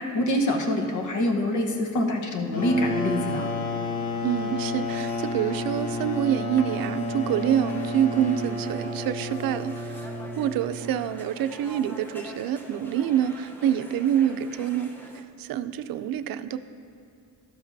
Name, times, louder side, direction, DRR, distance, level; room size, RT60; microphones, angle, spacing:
voice 1, 0.0-3.5, left 1 dB, 60° left, 2 dB, 1.1 m, -25 dB
sound 1, 2.5-11.0, left 2 dB, 85° left, 1.1 m, -31 dB
voice 2, 4.2-10.1 10.4-14.9 15.4-16.6, right 10 dB, 80° right, 11 dB, 0.5 m, -26 dB
sound 2, 4.8-15.2, equal, 5° left, 0.7 m, -45 dB
12.5 x 12.5 x 2.7 m, 2.3 s
cardioid pair, 150°, 34 cm